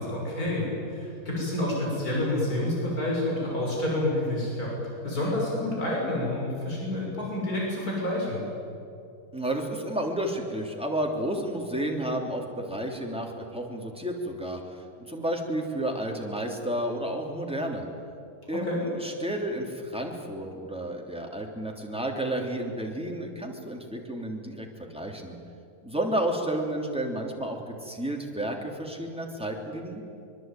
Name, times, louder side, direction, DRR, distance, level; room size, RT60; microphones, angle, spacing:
voice 1, 0.0-4.7 5.0-8.4 18.5-18.8, left 1 dB, 60° left, -3 dB, 6.7 m, -28 dB
voice 2, 9.3-17.9 18.5-25.4 25.8-30.0, right 1 dB, 5° right, 0 dB, 3.2 m, -31 dB
24.0 x 23.5 x 9.2 m, 2.6 s
omnidirectional pair, 1.8 m